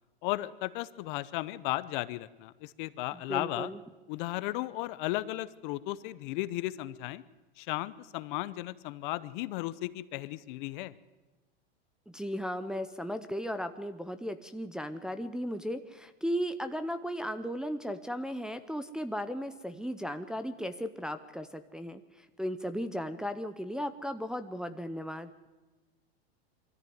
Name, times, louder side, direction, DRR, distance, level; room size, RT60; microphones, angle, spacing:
voice 1, 0.2-3.7 4.1-7.2 7.6-10.9, left 18 dB, 50° left, 16 dB, 0.9 m, -35 dB
voice 2, 3.1-3.8 12.1-25.3, equal, ahead, 7 dB, 0.7 m, -36 dB
23.0 x 14.0 x 9.4 m, 1.1 s
supercardioid pair, 135°, 31 cm